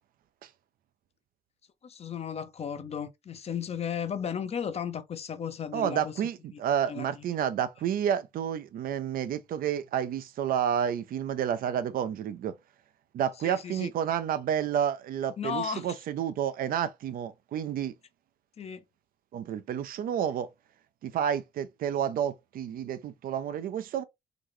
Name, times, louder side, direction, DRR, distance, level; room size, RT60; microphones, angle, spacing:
voice 1, 1.8-6.1 6.5-6.6 6.9-7.2 13.4-13.9 15.4-15.9 18.6-18.8, left 7 dB, 40° left, 0.6 m, -35 dB
voice 2, 5.7-12.5 13.1-17.9 19.3-20.5 21.0-24.0, right 9 dB, 60° right, 0.5 m, -30 dB
3.9 x 2.1 x 3.0 m
cardioid pair, 95°, 17 cm